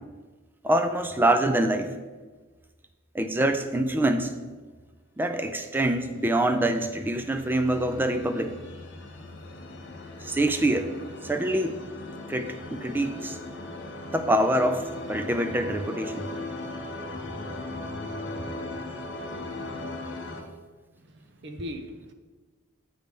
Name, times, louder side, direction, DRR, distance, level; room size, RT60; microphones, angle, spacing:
voice 1, 0.6-2.0 3.1-4.4 5.2-8.6 10.2-10.9 11.2-11.8 12.3-13.4 14.1-16.3, right 1 dB, 10° right, 7 dB, 0.3 m, -25 dB
sound 1, 6.1-20.4, left 2 dB, 55° left, 0.8 m, -38 dB
voice 2, 21.0-22.1, left 1 dB, 55° right, 6 dB, 0.6 m, -39 dB
7.8 x 3.3 x 5.1 m, 1.3 s
head